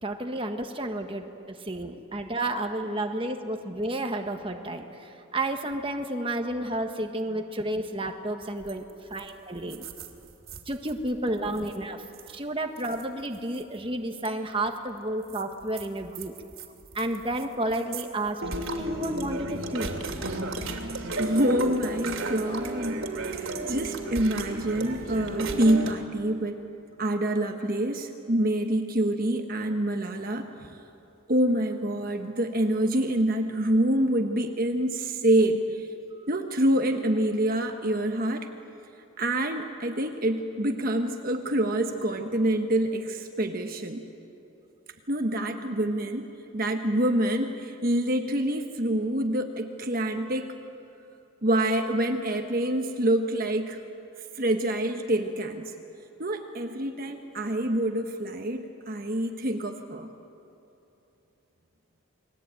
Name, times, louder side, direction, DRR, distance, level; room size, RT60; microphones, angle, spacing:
voice 1, 0.0-8.8 9.1-9.8 10.7-12.0 12.3-16.3 16.9-20.0, right 1 dB, 25° right, 4 dB, 1.5 m, -31 dB
sound 1, 8.6-8.9 9.2-9.3 9.6-10.9 11.4-11.8 12.1-12.4 12.8-13.6 14.2-14.3 15.3-17.4 17.7-18.0 18.4-25.9, right 2 dB, 70° right, 2.6 m, -34 dB
voice 2, 21.2-26.6 27.0-30.8 31.3-35.9 36.3-38.5 39.2-44.1 45.1-50.6 51.4-53.8 54.3-55.7 56.2-60.1, right 1 dB, 40° right, 4 dB, 1.3 m, -26 dB
29.5 x 21.5 x 9.0 m, 2.9 s
head